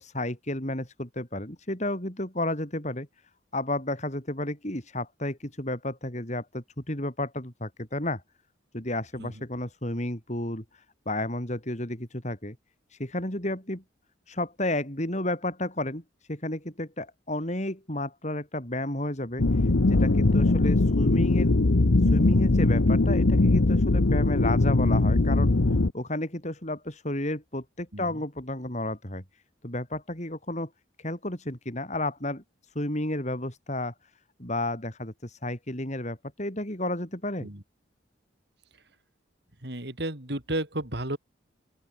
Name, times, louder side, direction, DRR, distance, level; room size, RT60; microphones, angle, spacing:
voice 1, 0.0-3.1 3.5-8.2 8.7-12.6 12.9-13.8 14.3-16.0 16.3-21.5 22.0-25.5 25.9-30.7 31.0-33.9 34.4-37.5, left 1 dB, 40° left, 5.4 m, -32 dB
sound 1, 19.4-25.9, left 2 dB, 85° left, 1.0 m, -21 dB
voice 2, 39.6-41.2, right 1 dB, 60° right, 3.6 m, -32 dB
open air
head